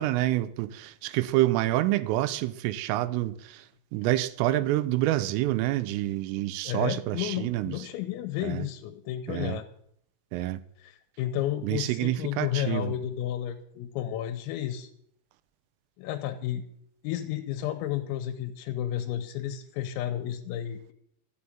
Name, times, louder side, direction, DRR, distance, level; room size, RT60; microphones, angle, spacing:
voice 1, 0.0-3.7 3.9-7.8 8.4-8.7 9.3-9.6 10.3-10.6 11.6-12.9, right 15 dB, 85° right, 3.3 m, -27 dB
voice 2, 6.7-9.7 10.8-14.9 16.0-16.6 17.0-20.9, left 12 dB, 90° left, 3.6 m, -32 dB
13.5 x 7.8 x 8.7 m
omnidirectional pair, 5.9 m